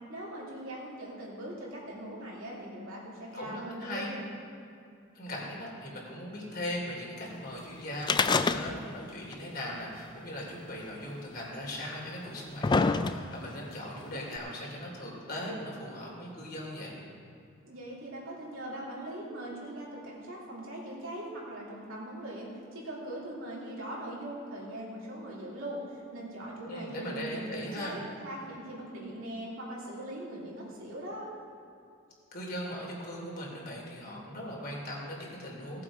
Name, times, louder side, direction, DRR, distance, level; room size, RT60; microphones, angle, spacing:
voice 1, 0.1-4.2 17.6-31.3, right 1 dB, 70° right, -5 dB, 3.2 m, -41 dB
voice 2, 3.3-4.2 5.1-16.9 26.6-27.9 32.3-35.8, left 1 dB, 45° left, -3 dB, 3.2 m, -39 dB
sound 1, 8.0-9.1 9.3-9.4 10.4-10.5 11.4-11.5 12.2-13.5 14.4-14.5, left 4 dB, 20° left, 0.3 m, -26 dB
17.0 x 7.7 x 4.9 m, 2.5 s
head